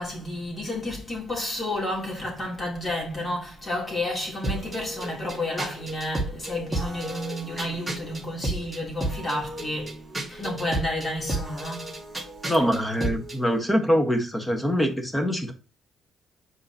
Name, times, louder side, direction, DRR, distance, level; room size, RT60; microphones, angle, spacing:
voice 1, 0.0-11.9, left 1 dB, 30° left, 3.4 m, -31 dB
sound 1, 4.4-13.4, right 1 dB, 5° right, 2.3 m, -33 dB
voice 2, 12.5-15.5, equal, 15° left, 1.5 m, -24 dB
7.6 x 5.0 x 3.0 m
cardioid pair, 90°, 0 cm